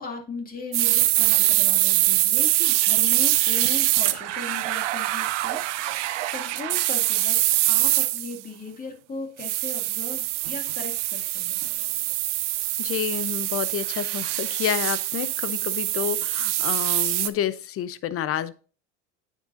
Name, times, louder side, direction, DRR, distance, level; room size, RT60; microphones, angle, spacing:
voice 1, 0.0-7.4 7.7-11.6, left 3 dB, 25° left, 2 dB, 2.3 m, -37 dB
sound 1, 0.7-8.4 9.4-17.3, right 16 dB, 80° right, 0.6 m, -24 dB
voice 2, 12.8-18.5, left 10 dB, 40° left, 15 dB, 0.7 m, -29 dB
9.1 x 7.4 x 2.6 m, 0.38 s
hypercardioid pair, 80°, 35 cm